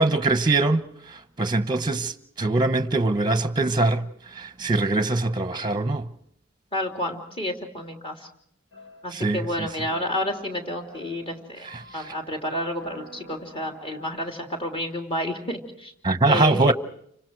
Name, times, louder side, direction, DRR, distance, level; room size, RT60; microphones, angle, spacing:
voice 1, 0.0-6.1 9.1-9.7 16.0-16.7, right 2 dB, 20° right, 1.0 m, -23 dB
voice 2, 6.7-8.3 9.0-15.9 16.3-16.7, left 1 dB, 25° left, 3.3 m, -30 dB
sound 1, 8.7-14.1, equal, 70° left, 6.4 m, -47 dB
30.0 x 26.0 x 4.7 m
head